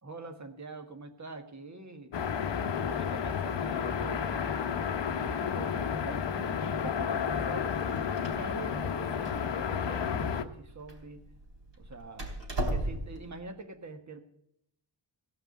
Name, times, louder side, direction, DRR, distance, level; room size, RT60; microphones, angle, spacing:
voice 1, 0.0-2.2 2.9-4.4 5.2-7.7 8.3-11.3 11.8-12.3 12.7-14.2, right 3 dB, 35° right, 7 dB, 1.6 m, -45 dB
sound 1, 2.1-10.4, left 7 dB, 60° left, 1.0 m, -31 dB
Door, 7.7-13.3, right 1 dB, 65° right, 3.7 m, -38 dB
16.5 x 5.8 x 9.1 m, 0.75 s
wide cardioid pair, 130°, 48 cm